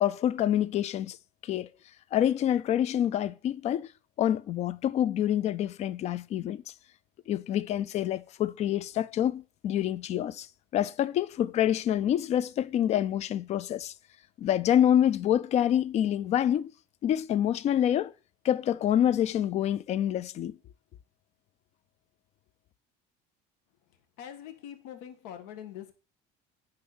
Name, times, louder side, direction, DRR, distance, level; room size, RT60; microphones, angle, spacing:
voice 1, 0.0-1.2 1.4-1.7 2.1-3.9 4.2-6.6 7.3-10.5 10.7-13.9 14.4-16.7 17.0-18.1 18.4-20.6, left 10 dB, 35° left, 0.5 m, -27 dB
voice 2, 24.2-25.9, left 10 dB, 80° left, 1.8 m, -43 dB
9.7 x 5.6 x 6.1 m
cardioid pair, 160°, 20 cm